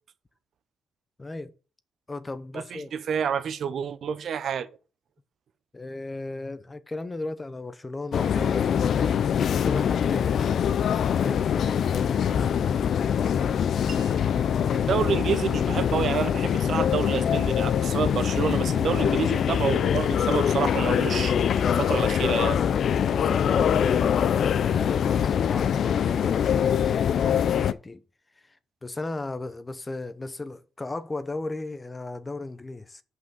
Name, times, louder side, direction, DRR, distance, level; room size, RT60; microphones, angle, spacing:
voice 1, 1.2-1.5 2.1-2.9 5.7-10.7 11.2-12.6 23.1-28.0 28.8-33.0, left 2 dB, 20° left, 0.7 m, -36 dB
voice 2, 2.5-4.7 14.7-22.6, right 7 dB, 60° right, 0.8 m, -29 dB
sound 1, 8.1-27.7, left 8 dB, 60° left, 0.4 m, -24 dB
Wind chime, 13.9-21.5, right 5 dB, 45° right, 1.1 m, -54 dB
5.8 x 5.5 x 6.9 m
cardioid pair, 90°, 0 cm